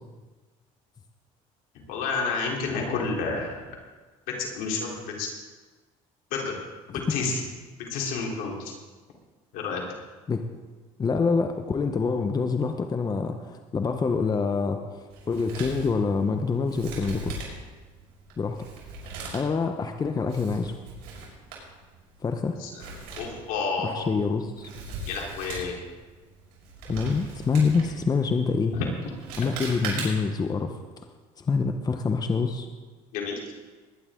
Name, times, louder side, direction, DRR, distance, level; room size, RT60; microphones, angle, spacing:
voice 1, 1.9-3.7 4.3-5.3 6.3-6.5 6.9-7.3 7.8-8.7 9.5-9.8 22.6-22.8 23.2-24.1 25.1-25.8 29.4-29.5 33.1-33.4, left 4 dB, 80° left, -1 dB, 3.6 m, -30 dB
voice 2, 11.0-17.4 18.4-18.6 19.3-20.8 22.2-22.6 23.8-24.7 26.9-28.8 29.4-30.8 31.4-32.7, left 4 dB, 25° left, 6 dB, 0.9 m, -26 dB
Male speech man speaking, 15.1-30.4, right 3 dB, 90° right, 5.3 m, -40 dB
20.5 x 10.5 x 3.8 m, 1.3 s
cardioid pair, 100°, 14 cm